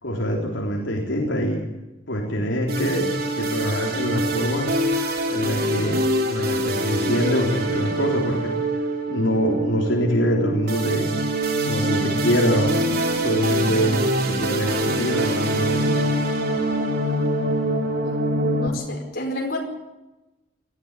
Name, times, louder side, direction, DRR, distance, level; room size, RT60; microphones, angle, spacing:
voice 1, 0.0-1.6 2.1-3.1 3.3-4.7 5.3-8.5 9.1-11.2 11.7-12.7 13.2-15.9, equal, 75° left, -1 dB, 3.8 m, -24 dB
sound 1, 2.7-18.7, right 1 dB, 55° right, 3.2 m, -24 dB
voice 2, 18.0-19.6, left 1 dB, 55° left, 2 dB, 5.0 m, -30 dB
19.0 x 14.5 x 9.7 m, 1.0 s
head